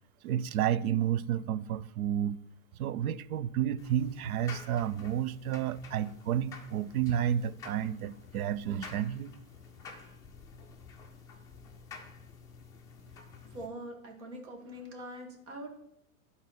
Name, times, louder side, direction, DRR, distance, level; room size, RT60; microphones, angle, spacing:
voice 1, 0.2-2.4 2.8-9.3, right 10 dB, 80° right, 0.6 m, -31 dB
Dryer loop (belt buckle clacky), 3.8-13.7, left 5 dB, 10° left, 0.5 m, -50 dB
voice 2, 13.1-15.8, right 1 dB, 55° right, 2.6 m, -44 dB
11.0 x 4.1 x 6.0 m
supercardioid pair, 165°, 42 cm